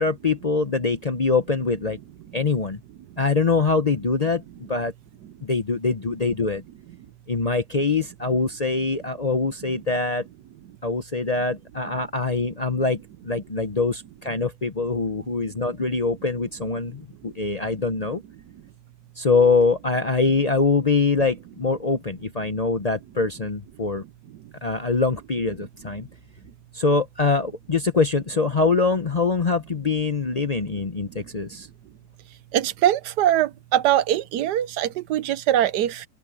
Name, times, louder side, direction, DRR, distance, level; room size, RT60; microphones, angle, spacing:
voice 1, 0.0-2.0 2.3-2.8 3.2-4.4 4.7-4.9 5.5-6.6 7.3-10.2 10.8-13.0 13.3-18.2 19.2-24.0 24.6-26.1 26.8-31.7, left 4 dB, 45° left, 0.5 m, -23 dB
voice 2, 32.5-36.0, right 12 dB, 70° right, 1.2 m, -22 dB
open air
omnidirectional pair, 1.9 m